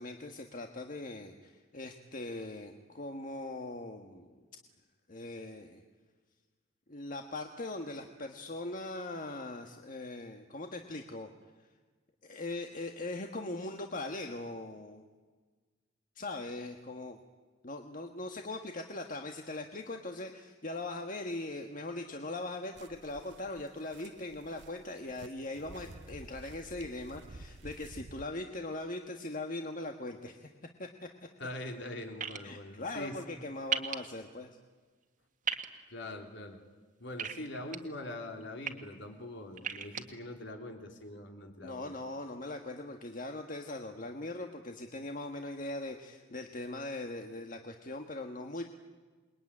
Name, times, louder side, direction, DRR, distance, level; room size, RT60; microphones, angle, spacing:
voice 1, 0.0-4.4 5.1-5.8 6.9-11.3 12.2-15.0 16.2-17.2 17.6-30.5 30.8-31.1 32.4-34.6 41.6-48.6, left 2 dB, 45° left, 4 dB, 1.6 m, -40 dB
sound 1, 22.7-28.3, right 2 dB, 60° right, 1.0 m, -51 dB
voice 2, 31.4-33.4 35.9-36.6 37.0-41.9, left 1 dB, 60° left, 4 dB, 3.4 m, -43 dB
sound 2, 32.2-32.4 33.7-34.0 35.4-35.7 37.2-37.8 38.4-38.7 39.6-40.0, right 7 dB, 40° right, 1.8 m, -34 dB
27.5 x 21.5 x 9.9 m, 1.4 s
head